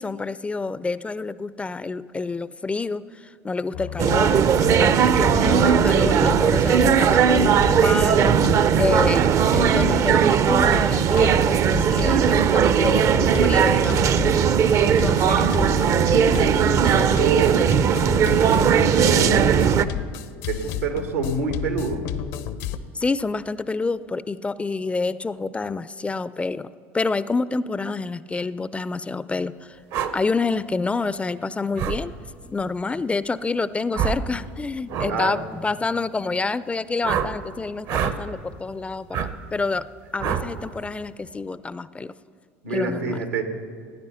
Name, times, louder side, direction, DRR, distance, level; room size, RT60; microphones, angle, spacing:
voice 1, 0.0-4.4 4.8-9.3 9.5-14.1 14.8-15.7 16.8-17.1 22.9-26.7 26.9-29.8 30.1-32.1 32.5-39.9 40.1-42.1 42.7-43.2, left 3 dB, 15° left, 16 dB, 0.4 m, -28 dB
sound 1, 3.7-10.4 10.6-10.9 11.1-22.8, left 9 dB, 70° left, 0.7 m, -32 dB
sound 2, 4.0-19.9, right 8 dB, 45° right, 0.6 m, -18 dB
voice 2, 16.4-19.6 20.5-22.0 35.1-35.4 42.6-43.4, right 4 dB, 90° right, 5 dB, 1.6 m, -27 dB
sound 3, 29.9-30.1 31.8-32.0 33.9-34.2 34.9-35.1 37.0-37.3 37.9-38.2 39.1-39.3 40.2-40.5, right 8 dB, 60° right, 0.9 m, -25 dB
17.0 x 9.6 x 5.5 m, 2.1 s
hypercardioid pair, 80°, 7 cm